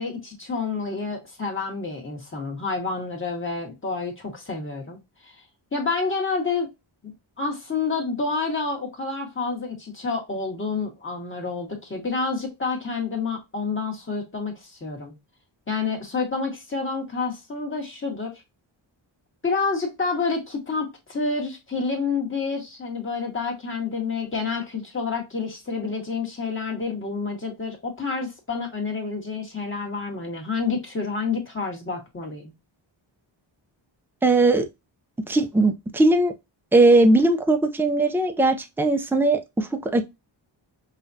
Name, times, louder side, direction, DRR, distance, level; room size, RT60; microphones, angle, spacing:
voice 1, 0.0-5.0 5.2-5.3 5.7-6.7 7.0-15.1 15.7-18.3 19.4-32.5, left 4 dB, 25° left, 1.6 m, -29 dB
voice 2, 34.2-34.7 35.3-36.3 36.7-40.0, right 2 dB, 5° right, 0.5 m, -19 dB
5.5 x 2.4 x 2.7 m
wide cardioid pair, 130°, 47 cm